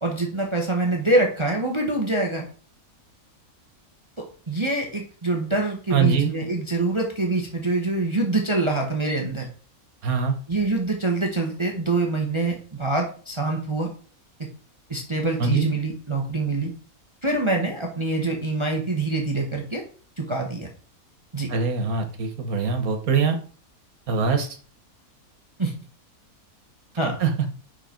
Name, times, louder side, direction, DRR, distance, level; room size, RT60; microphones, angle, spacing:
voice 1, 0.0-2.5 4.2-9.5 10.5-13.9 14.9-16.7 17.2-19.8 20.2-20.7 21.3-21.5 25.6-25.7 27.0-27.2, right 2 dB, 20° right, 1 dB, 1.2 m, -25 dB
voice 2, 5.9-6.3 10.0-10.4 15.4-15.7 21.5-23.4 24.1-24.6 27.2-27.5, right 5 dB, 70° right, 6 dB, 1.7 m, -23 dB
7.8 x 5.8 x 4.5 m, 0.41 s
omnidirectional pair, 1.6 m